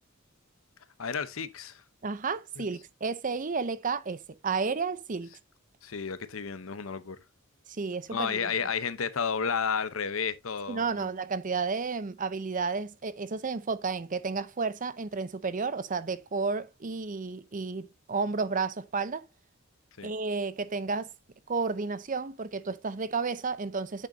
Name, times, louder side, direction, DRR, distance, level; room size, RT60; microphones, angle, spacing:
voice 1, 1.0-1.8 2.6-2.7 5.8-7.2 8.1-11.1 20.0-20.1, left 6 dB, 70° left, 0.8 m, -32 dB
voice 2, 2.0-5.3 7.8-8.5 10.7-19.2 20.0-21.1 21.5-24.1, right 4 dB, 40° right, 0.7 m, -32 dB
9.4 x 6.4 x 2.7 m
head